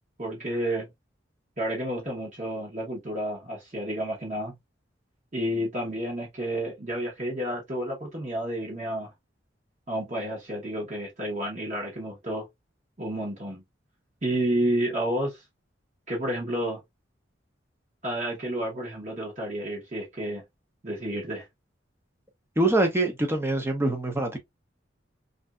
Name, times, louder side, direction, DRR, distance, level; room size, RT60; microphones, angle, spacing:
voice 1, 0.2-0.9 1.6-4.5 5.3-9.1 9.9-12.5 13.0-13.6 14.2-15.4 16.1-16.8 18.0-20.4 20.8-21.4, right 1 dB, 40° right, 1.0 m, -30 dB
voice 2, 22.6-24.4, right 2 dB, 15° right, 0.6 m, -24 dB
3.2 x 2.6 x 2.3 m
head